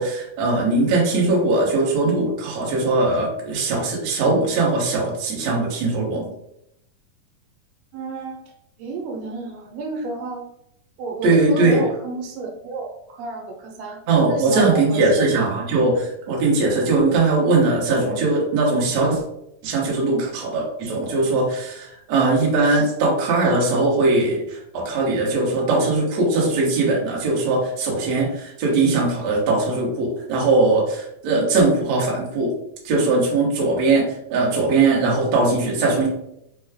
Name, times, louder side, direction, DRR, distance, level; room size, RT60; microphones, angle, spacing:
voice 1, 0.0-6.2 11.2-11.8 14.1-19.2 19.6-32.5 32.8-36.1, right 3 dB, 65° right, -2 dB, 1.9 m, -20 dB
voice 2, 7.9-8.4 8.8-10.5 11.0-14.0 14.3-15.2, right 3 dB, 85° right, 1 dB, 2.5 m, -31 dB
5.6 x 2.2 x 3.3 m, 0.78 s
omnidirectional pair, 3.9 m